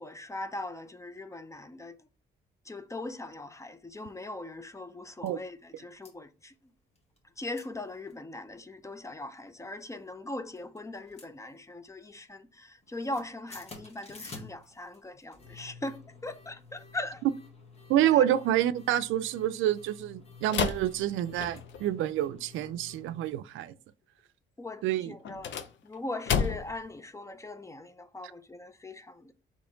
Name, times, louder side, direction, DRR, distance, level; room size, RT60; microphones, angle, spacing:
voice 1, 0.0-2.0 2.7-5.6 5.8-6.5 7.4-17.2 18.0-18.1 24.6-29.3, left 2 dB, 15° left, 0.5 m, -40 dB
sound 1, 4.0-4.1 4.6-4.7 4.9-5.3 5.8-6.1 7.0-7.3 7.5-7.7 8.0-8.1 8.6-9.0 9.7-10.2 10.6-11.9 12.2-12.5 12.8-23.3, left 3 dB, 30° left, 1.3 m, -51 dB
voice 2, 17.9-23.7 24.8-25.2, right 12 dB, 85° right, 0.4 m, -28 dB
sound 2, 20.5-21.9 25.2-26.9, left 7 dB, 70° left, 0.6 m, -32 dB
4.3 x 3.1 x 3.7 m
cardioid pair, 90°, 20 cm